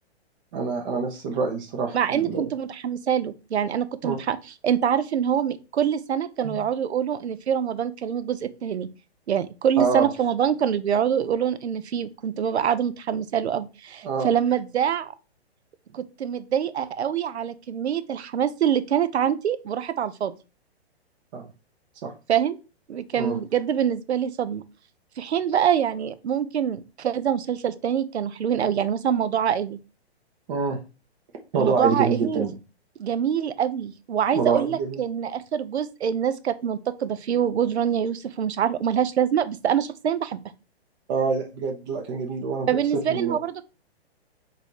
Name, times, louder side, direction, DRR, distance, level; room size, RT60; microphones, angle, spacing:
voice 1, 0.5-2.4 4.0-4.2 6.4-6.6 9.8-10.1 14.0-14.3 21.3-21.4 22.0-22.1 23.2-23.4 30.5-30.8 31.5-32.5 34.3-35.0 41.1-42.7 43.1-43.4, right 5 dB, 45° right, 1 dB, 0.9 m, -26 dB
voice 2, 1.9-4.4 4.6-8.9 9.3-15.1 15.9-20.3 22.3-22.6 22.9-24.6 25.2-29.8 31.6-32.5 33.0-40.4 42.7-43.6, right 8 dB, 80° right, 14 dB, 0.6 m, -25 dB
4.1 x 2.7 x 4.7 m, 0.31 s
hypercardioid pair, 130°, 33 cm